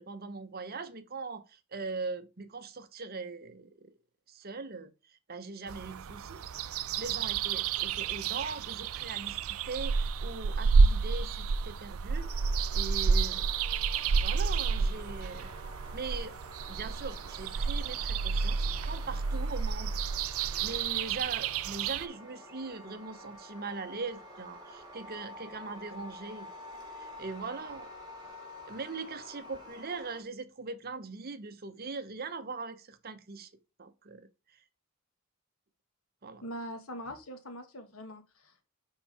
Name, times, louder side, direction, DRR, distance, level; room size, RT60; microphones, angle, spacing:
voice 1, 0.0-3.9 4.3-6.4 6.9-12.3 12.7-13.6 14.1-15.5 15.9-16.3 16.7-18.6 18.8-20.0 20.6-26.5 26.9-27.9 28.7-33.5 33.8-34.3 36.2-36.4, right 4 dB, 45° right, 0.8 m, -41 dB
sound 1, 5.7-22.1, right 5 dB, 75° right, 0.5 m, -30 dB
sound 2, 12.1-30.2, left 1 dB, 20° right, 2.8 m, -49 dB
voice 2, 36.4-38.7, equal, 75° left, 1.5 m, -42 dB
6.0 x 5.4 x 4.8 m
head